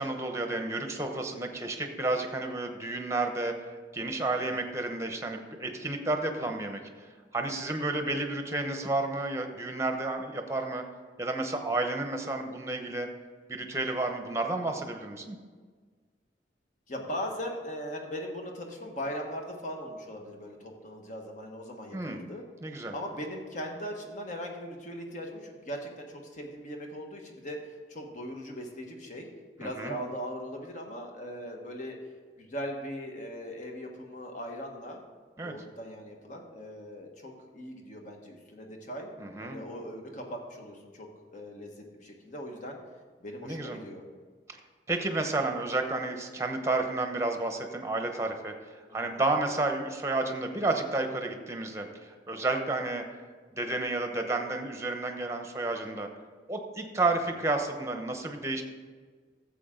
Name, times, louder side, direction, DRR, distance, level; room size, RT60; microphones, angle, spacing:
voice 1, 0.0-3.5 3.9-6.8 7.3-10.8 11.2-13.1 13.5-15.4 21.9-22.2 22.6-22.9 29.6-30.0 35.4-35.5 39.2-39.6 43.4-43.8 44.5-44.6 44.9-48.5 48.9-53.0 53.5-56.1 56.5-58.6, right 2 dB, 15° right, 5 dB, 0.9 m, -31 dB
voice 2, 16.9-22.4 22.9-27.6 27.9-29.3 29.6-32.0 32.4-35.0 35.4-39.1 39.4-42.8 43.2-44.0 48.9-49.2, equal, 45° left, 2 dB, 1.4 m, -39 dB
13.0 x 7.6 x 3.8 m, 1.5 s
head